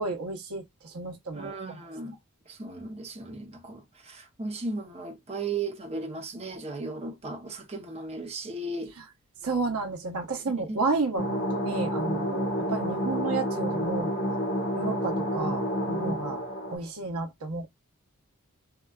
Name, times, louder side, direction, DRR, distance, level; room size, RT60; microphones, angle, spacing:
voice 1, 0.0-1.5 9.4-14.1 14.7-16.4 16.7-17.7, right 3 dB, 90° right, 0.8 m, -31 dB
voice 2, 1.3-2.2 2.5-8.9 10.7-10.8, right 3 dB, 30° right, 0.7 m, -36 dB
sound 1, 11.2-16.8, equal, 70° left, 1.0 m, -29 dB
3.7 x 2.3 x 2.3 m
head